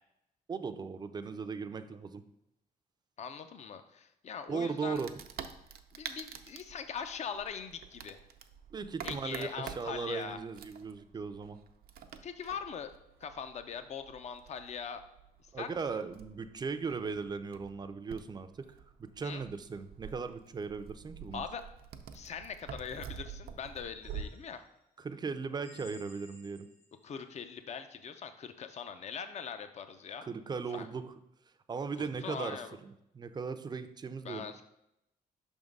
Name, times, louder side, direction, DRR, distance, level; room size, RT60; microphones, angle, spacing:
voice 1, 0.5-2.2 4.5-5.1 8.7-11.6 15.5-18.7 19.0-21.4 25.0-26.7 30.3-31.1 31.7-34.5, right 5 dB, 25° right, 10 dB, 0.4 m, -38 dB
voice 2, 3.2-5.0 5.9-8.2 9.0-10.4 12.2-12.9 13.2-15.0 15.6-15.8 19.2-19.4 21.3-21.6 22.1-24.6 27.0-30.3 30.7-30.9 32.0-32.8 34.2-34.6, left 6 dB, 45° left, 9 dB, 0.5 m, -41 dB
Wood, 4.9-24.2, right 8 dB, 75° right, 0.5 m, -48 dB
sound 1, 24.0-24.8 25.6-27.1, left 3 dB, 85° left, 1.7 m, -58 dB
5.7 x 3.6 x 5.3 m, 0.82 s
cardioid pair, 120°, 16 cm